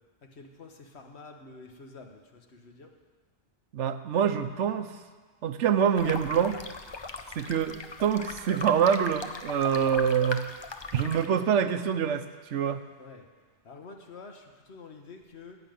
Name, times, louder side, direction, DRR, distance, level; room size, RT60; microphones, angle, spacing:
voice 1, 0.2-2.9 13.0-13.2 13.6-15.6, left 4 dB, 70° left, 3 dB, 1.5 m, -48 dB
voice 2, 3.7-5.0 5.4-6.6 7.3-10.5 10.9-12.8, right 8 dB, 85° right, 10 dB, 1.1 m, -26 dB
sound 1, 6.0-11.3, left 3 dB, 30° left, 0.5 m, -39 dB
15.0 x 5.9 x 9.2 m, 1.4 s
omnidirectional pair, 1.2 m